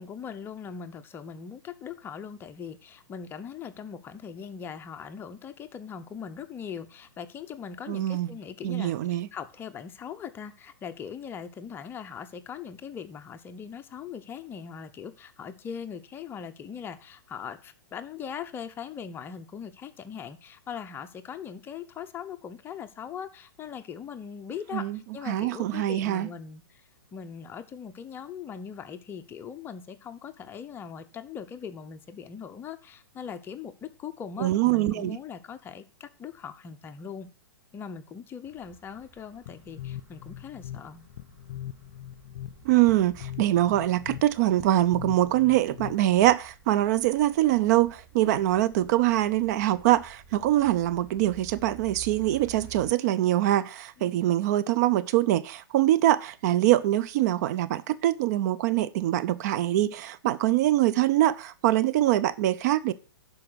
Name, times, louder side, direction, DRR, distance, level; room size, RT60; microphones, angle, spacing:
voice 1, 0.0-26.8 27.1-37.3 37.7-41.1 54.0-54.2, left 7 dB, 20° left, 0.8 m, -40 dB
voice 2, 7.9-8.3 8.6-9.3 24.7-25.0 25.3-26.3 34.4-35.2 42.6-62.9, right 14 dB, 45° right, 0.6 m, -24 dB
sound 1, 38.4-52.9, right 7 dB, 30° right, 4.6 m, -52 dB
sound 2, 39.5-46.3, left 12 dB, 55° left, 0.5 m, -41 dB
11.5 x 4.9 x 6.2 m
hypercardioid pair, 125°, 12 cm